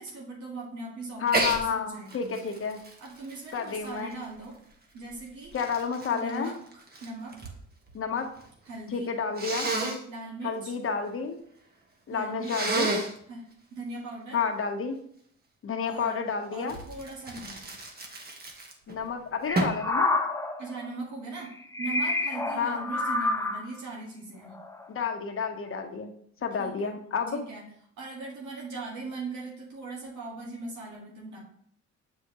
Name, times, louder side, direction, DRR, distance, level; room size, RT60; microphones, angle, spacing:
voice 1, 0.0-2.3 3.0-4.6 4.9-5.6 6.1-7.5 8.6-9.1 10.1-10.7 12.1-12.8 13.3-13.4 13.7-14.4 15.9-16.2 16.5-17.8 20.6-24.6 26.6-27.0 27.3-27.6 28.0-31.4, right 3 dB, 75° right, -3 dB, 1.9 m, -39 dB
voice 2, 1.2-2.8 3.5-4.1 5.5-6.5 7.9-8.3 8.9-9.7 10.4-11.4 12.1-12.9 14.3-15.0 15.6-16.8 18.9-20.1 22.6-22.9 24.9-26.1 26.4-27.4, left 6 dB, 45° left, 5 dB, 1.1 m, -30 dB
Sneeze, 1.3-1.6 2.1-4.4 5.1-7.6 7.9-8.5 9.4-10.0 12.4-13.2 16.7-19.0 19.5-19.9, right 2 dB, 30° right, 1.3 m, -31 dB
sound 1, 19.5-20.9 21.6-23.7 24.5-24.8, left 2 dB, 10° left, 0.6 m, -29 dB
7.8 x 4.7 x 3.0 m, 0.66 s
cardioid pair, 90°, 30 cm